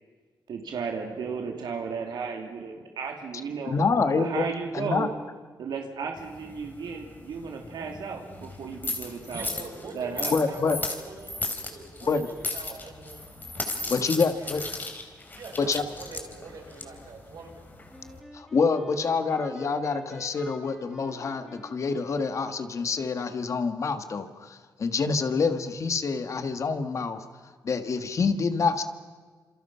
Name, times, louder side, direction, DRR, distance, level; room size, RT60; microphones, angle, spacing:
voice 1, 0.5-3.8 4.1-5.1 5.6-9.6 9.9-10.4, right 5 dB, 90° right, 2 dB, 3.0 m, -34 dB
voice 2, 3.7-4.4 4.7-5.1 10.3-10.8 12.1-12.3 13.9-14.6 15.6-15.8 18.3-27.2 27.6-28.8, left 4 dB, 45° left, 9 dB, 1.6 m, -26 dB
sound 1, 6.2-18.2, left 2 dB, 25° left, 3.3 m, -36 dB
voice 3, 9.3-11.3 11.7-13.2 13.8-14.6 15.3-17.6, right 3 dB, 65° right, 0 dB, 7.8 m, -44 dB
Wind instrument woodwind instrument, 17.9-23.0, equal, ahead, 4.9 m, -48 dB
29.5 x 27.5 x 5.7 m, 1.5 s
wide cardioid pair, 160°, 7 cm